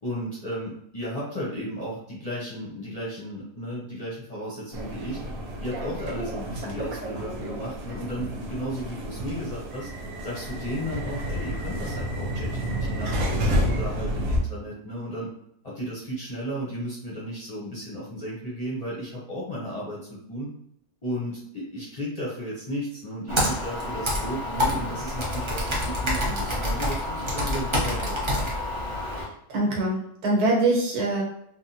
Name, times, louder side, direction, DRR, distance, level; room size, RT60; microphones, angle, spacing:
voice 1, 0.0-5.2 5.6-9.9 10.2-15.3 15.6-20.5 21.0-28.5, equal, 35° left, -6 dB, 0.6 m, -34 dB
sound 1, 4.7-14.4, equal, 65° right, 1.0 m, -30 dB
Computer keyboard, 23.3-29.3, left 1 dB, 45° right, 0.4 m, -27 dB
voice 2, 29.2-31.2, right 2 dB, 85° right, -2 dB, 1.5 m, -24 dB
3.5 x 2.3 x 2.7 m, 0.72 s
omnidirectional pair, 1.6 m